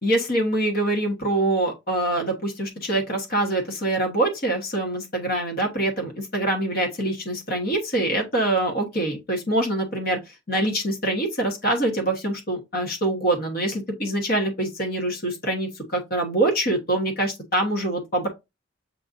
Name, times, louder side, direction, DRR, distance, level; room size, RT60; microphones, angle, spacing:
voice 1, 0.0-10.2 10.5-18.3, right 1 dB, 50° left, 1.3 m, -24 dB
7.6 x 2.6 x 2.6 m
head